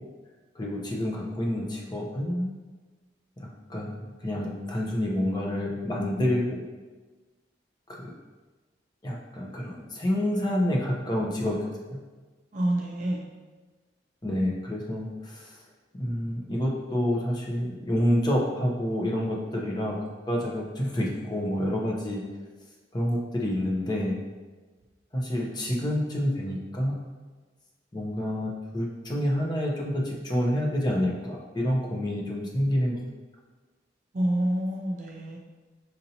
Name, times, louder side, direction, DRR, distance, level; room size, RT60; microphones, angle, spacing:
voice 1, 0.6-2.5 3.4-6.6 8.0-8.1 9.0-11.6 14.2-15.6 15.9-20.0 20.3-22.2 22.9-24.2 25.1-27.0 27.9-33.0, left 1 dB, 25° left, -2 dB, 0.6 m, -28 dB
voice 2, 12.5-13.2 34.1-35.4, right 1 dB, 45° right, -1 dB, 0.4 m, -27 dB
6.4 x 2.7 x 2.8 m, 1.3 s
head